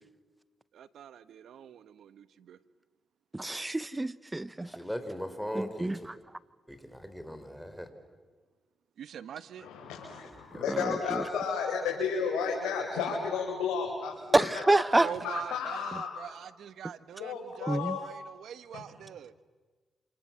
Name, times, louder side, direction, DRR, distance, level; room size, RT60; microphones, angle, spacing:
voice 1, 0.7-2.6 9.0-9.7 14.9-19.3, right 9 dB, 75° right, 1.1 m, -43 dB
voice 2, 3.3-4.7 5.5-6.2 10.7-11.2 14.3-15.1 17.7-18.0, right 2 dB, 20° right, 0.8 m, -27 dB
voice 3, 4.6-5.9 6.7-7.9 10.5-10.6, equal, 5° left, 4.7 m, -38 dB
voice 4, 9.6-14.7 15.1-16.3 17.2-18.0 18.7-18.8, left 6 dB, 85° left, 4.3 m, -33 dB
28.0 x 28.0 x 7.6 m
supercardioid pair, 55°, 0 cm